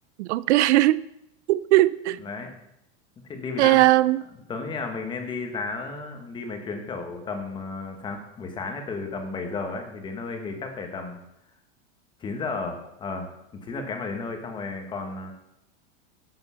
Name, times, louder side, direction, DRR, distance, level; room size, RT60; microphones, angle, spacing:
voice 1, 0.2-1.0 1.5-2.2 3.6-4.2, right 16 dB, 75° right, 18 dB, 0.5 m, -19 dB
voice 2, 2.2-2.5 3.3-3.9 4.5-11.2 12.2-13.3 13.6-15.3, left 4 dB, 15° left, 5 dB, 1.1 m, -33 dB
11.0 x 7.9 x 5.6 m, 0.82 s
supercardioid pair, 180°, 34 cm